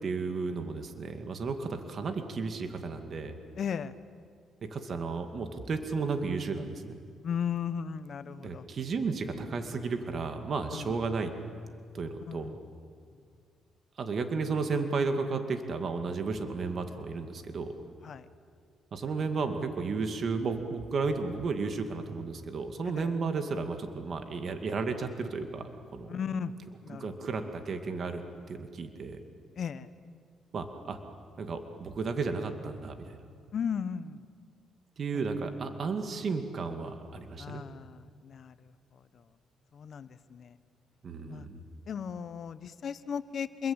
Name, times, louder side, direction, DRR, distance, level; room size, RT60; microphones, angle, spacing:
voice 1, 0.0-3.4 4.6-7.0 8.3-11.3 11.9-12.5 14.0-17.7 18.9-26.2 27.0-28.2 28.5-29.2 30.5-31.0 31.4-33.2 35.0-37.6 41.0-41.6, right 4 dB, 50° right, 6 dB, 2.4 m, -33 dB
voice 2, 3.6-3.9 7.2-8.7 10.7-11.0 12.3-12.6 18.0-18.3 22.9-23.1 26.1-26.5 26.8-27.3 29.5-29.9 33.5-34.2 37.4-39.2 39.7-40.6 41.2-41.5 41.9-43.7, left 7 dB, 55° left, 13 dB, 1.2 m, -36 dB
28.5 x 22.0 x 9.0 m, 2.1 s
cardioid pair, 90°, 0 cm